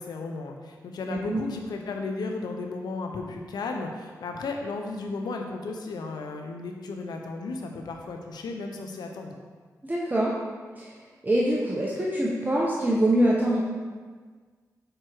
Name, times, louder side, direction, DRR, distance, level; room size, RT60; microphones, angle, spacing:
voice 1, 0.0-9.3, left 3 dB, 90° left, 3 dB, 0.7 m, -34 dB
voice 2, 1.1-1.4 9.8-10.3 10.7-11.0 11.2-13.6, right 1 dB, 25° right, -5 dB, 1.1 m, -24 dB
6.6 x 4.4 x 4.5 m, 1.5 s
cardioid pair, 50°, 7 cm